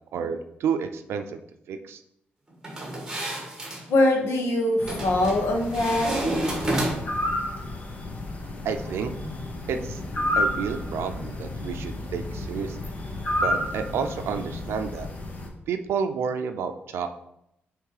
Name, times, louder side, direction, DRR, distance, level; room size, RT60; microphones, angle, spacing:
voice 1, 0.1-1.4 1.7-2.0 8.6-9.1 9.7-10.0 10.4-12.9 13.4-15.1 15.7-17.1, right 6 dB, 85° right, 7 dB, 0.5 m, -30 dB
sound 1, 2.6-3.8 4.9-5.4 5.7-7.2, right 1 dB, 15° right, 1.6 m, -29 dB
voice 2, 3.9-6.1, left 1 dB, 75° left, 2 dB, 1.4 m, -22 dB
sound 2, 4.8-15.5, left 1 dB, 35° left, 1.0 m, -31 dB
sound 3, 8.5-14.7, equal, 10° left, 1.8 m, -42 dB
8.2 x 3.2 x 4.8 m, 0.80 s
wide cardioid pair, 160°, 4 cm